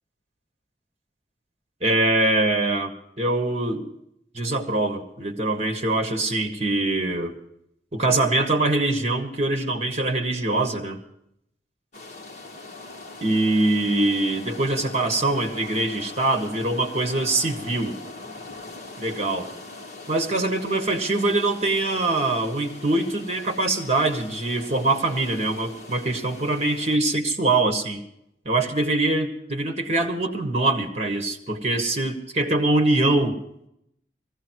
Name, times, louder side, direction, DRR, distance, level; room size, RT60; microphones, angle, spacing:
voice 1, 1.8-3.9 4.3-7.4 7.9-11.0 13.2-18.0 19.0-19.5 20.1-28.0 28.4-33.4, right 2 dB, 35° right, 5 dB, 1.6 m, -23 dB
sound 1, 11.9-27.0, left 3 dB, 40° left, 1.6 m, -42 dB
18.5 x 16.0 x 4.6 m, 0.77 s
head